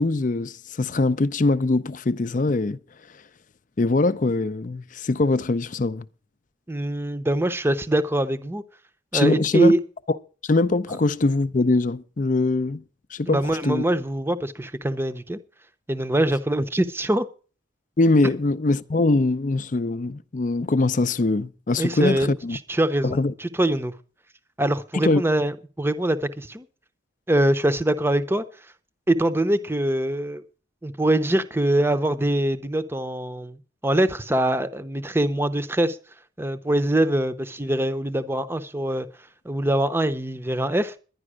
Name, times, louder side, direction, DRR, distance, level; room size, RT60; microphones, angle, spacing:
voice 1, 0.0-2.8 3.8-6.0 9.1-9.7 10.4-12.8 13.1-13.8 18.0-22.6 23.0-23.3 24.9-25.2, left 2 dB, 40° left, 0.5 m, -22 dB
voice 2, 6.7-8.6 9.1-9.8 13.3-15.4 15.9-17.3 21.8-23.9 24.6-26.7 27.3-28.4 29.1-30.4 30.8-36.0 36.4-39.1 39.4-40.9, right 1 dB, 10° right, 0.7 m, -23 dB
11.0 x 10.5 x 6.2 m
head